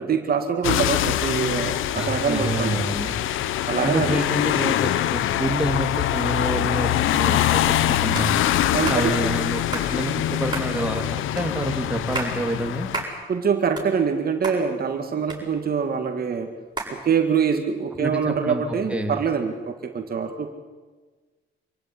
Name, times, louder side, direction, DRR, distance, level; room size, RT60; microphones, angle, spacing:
voice 1, 0.0-2.8 3.7-4.1 8.7-9.3 13.3-16.5 16.9-20.5, right 6 dB, 50° right, 6 dB, 2.1 m, -24 dB
sound 1, 0.6-13.0, left 12 dB, 85° left, 0.9 m, -24 dB
voice 2, 1.9-3.1 3.8-8.4 8.9-12.9 18.0-18.6 18.9-19.2, right 1 dB, 5° right, 3 dB, 3.0 m, -27 dB
sound 2, 8.1-8.3 8.8-9.0 9.7-9.9 10.5-10.7 11.4-11.5 12.0-12.3 12.9-13.1 13.5-14.2 14.4-14.6 15.3-15.9 16.8-16.9, right 3 dB, 20° right, 7.8 m, -31 dB
26.0 x 16.0 x 9.6 m, 1.4 s
cardioid pair, 90°, 20 cm